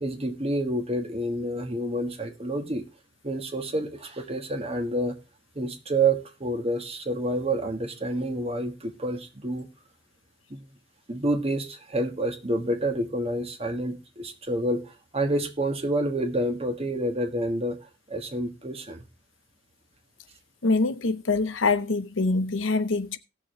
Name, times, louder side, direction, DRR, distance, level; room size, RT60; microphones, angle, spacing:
voice 1, 0.0-2.8 3.2-5.1 5.5-9.7 10.5-10.6 11.1-17.8 18.1-19.0, right 1 dB, 30° right, 1.4 m, -28 dB
voice 2, 20.6-23.2, left 3 dB, 75° left, 0.9 m, -24 dB
17.5 x 6.9 x 3.2 m
head